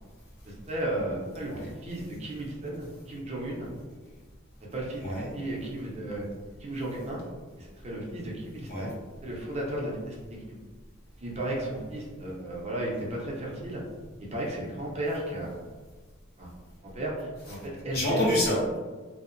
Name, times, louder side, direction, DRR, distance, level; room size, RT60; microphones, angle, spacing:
voice 1, 0.5-3.7 4.6-6.2 6.6-7.2 7.6-8.9 9.2-10.2 10.5-10.6 11.2-13.8 14.2-15.6 16.4-16.5 16.9-18.2, right 1 dB, 30° right, -3 dB, 0.5 m, -34 dB
voice 2, 17.9-18.8, left 1 dB, 50° left, -5 dB, 0.7 m, -27 dB
2.7 x 2.0 x 2.4 m, 1.4 s
head